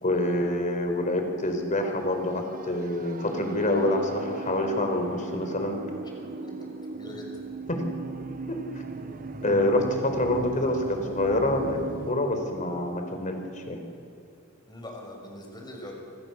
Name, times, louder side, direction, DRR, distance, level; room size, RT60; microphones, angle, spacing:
voice 1, 0.0-5.8 7.7-8.0 8.5-8.6 9.4-11.8 12.1-13.4 13.7-13.8, left 1 dB, 35° left, 4 dB, 4.4 m, -26 dB
sound 1, 1.8-12.1, right 4 dB, 40° right, 1.2 m, -38 dB
voice 2, 6.0-6.5 6.9-7.4 14.7-16.0, left 1 dB, 20° left, 0 dB, 6.5 m, -42 dB
27.5 x 27.0 x 7.2 m, 2.6 s
head